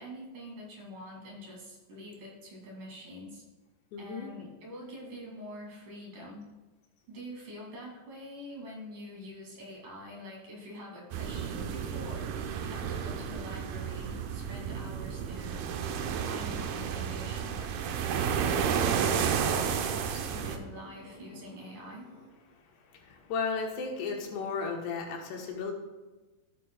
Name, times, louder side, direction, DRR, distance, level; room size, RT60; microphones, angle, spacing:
voice 1, 0.0-3.4 4.0-6.5 7.1-15.8 16.1-18.7 19.0-22.1, equal, 55° right, -4 dB, 3.8 m, -45 dB
voice 2, 3.9-4.3 22.9-25.7, left 5 dB, 85° left, 0 dB, 3.4 m, -34 dB
sound 1, 11.1-20.6, right 7 dB, 75° right, 2.5 m, -32 dB
sound 2, 12.7-22.3, equal, 40° left, 2.5 m, -52 dB
15.0 x 8.4 x 2.3 m, 1.2 s
omnidirectional pair, 4.7 m